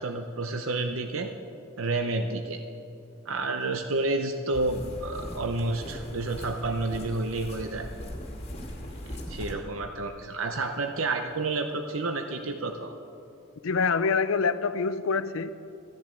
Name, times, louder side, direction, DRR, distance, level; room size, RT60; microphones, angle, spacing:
voice 1, 0.0-1.3 1.8-2.6 3.2-7.9 9.3-12.9, right 2 dB, 75° right, 0.8 m, -30 dB
sound 1, 4.5-9.5, equal, 30° left, 2.3 m, -39 dB
voice 2, 13.6-15.5, left 5 dB, 75° left, 0.5 m, -25 dB
13.0 x 10.5 x 8.3 m
head